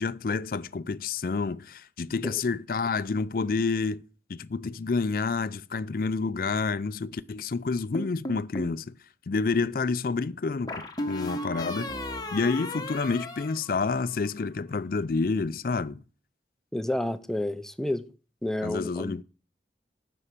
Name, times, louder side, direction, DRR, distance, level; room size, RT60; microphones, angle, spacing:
voice 1, 0.0-4.0 4.3-8.9 9.3-11.9 12.3-16.0 18.6-19.2, left 4 dB, 50° left, 0.4 m, -29 dB
sound 1, 7.9-8.8 10.7-14.3, left 1 dB, 20° left, 1.1 m, -35 dB
voice 2, 16.7-18.0 18.4-19.1, left 1 dB, 5° left, 0.5 m, -30 dB
9.8 x 6.1 x 6.8 m
head